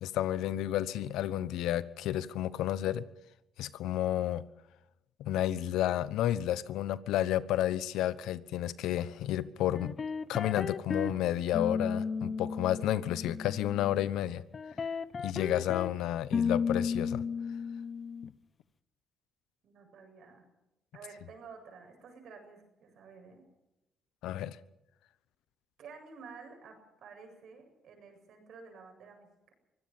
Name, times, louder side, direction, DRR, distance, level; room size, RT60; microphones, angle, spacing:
voice 1, 0.0-3.0 3.6-4.4 5.2-9.9 10.3-14.4 15.2-17.2 24.2-24.6, left 12 dB, 90° left, 16 dB, 1.0 m, -31 dB
sound 1, 9.7-11.2 11.5-14.1 14.5-15.9 16.3-18.3, left 5 dB, 40° left, 0.9 m, -34 dB
voice 2, 19.6-20.4 20.9-23.4 25.8-29.5, right 5 dB, 70° right, 5 dB, 7.8 m, -51 dB
24.0 x 17.0 x 7.3 m, 0.91 s
cardioid pair, 90°, 0 cm